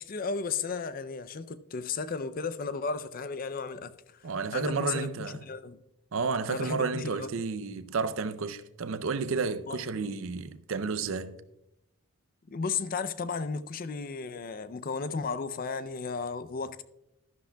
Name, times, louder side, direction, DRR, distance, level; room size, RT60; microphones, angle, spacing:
voice 1, 0.0-5.1 5.4-5.8 6.5-7.3 9.7-9.8 12.5-16.8, left 5 dB, 40° left, 0.4 m, -34 dB
voice 2, 4.2-5.4 6.1-11.4, right 4 dB, 70° right, 0.5 m, -31 dB
12.5 x 11.5 x 2.2 m
head